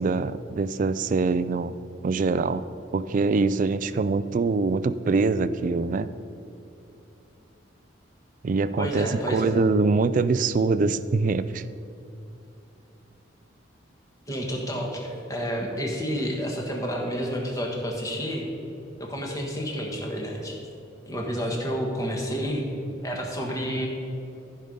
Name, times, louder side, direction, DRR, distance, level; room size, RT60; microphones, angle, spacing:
voice 1, 0.0-1.7 2.0-2.6 2.9-6.1 8.4-11.6, right 4 dB, 40° right, 14 dB, 0.3 m, -24 dB
voice 2, 8.8-9.5 14.3-18.4 19.1-20.6 21.1-22.6 23.0-23.9, equal, 15° left, 0 dB, 1.3 m, -30 dB
14.0 x 5.4 x 5.2 m, 2.8 s
head